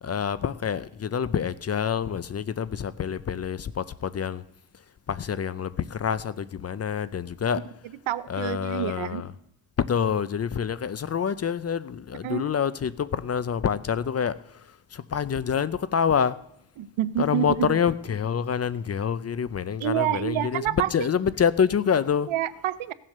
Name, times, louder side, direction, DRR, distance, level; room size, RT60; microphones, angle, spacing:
voice 1, 0.0-4.4 4.7-7.7 8.3-9.3 9.8-16.4 17.2-22.3, left 7 dB, 35° left, 0.5 m, -27 dB
voice 2, 8.1-9.2 12.2-12.4 16.8-17.7 19.8-20.9 22.3-22.9, right 12 dB, 90° right, 0.7 m, -27 dB
16.0 x 7.5 x 6.5 m
cardioid pair, 120°, 46 cm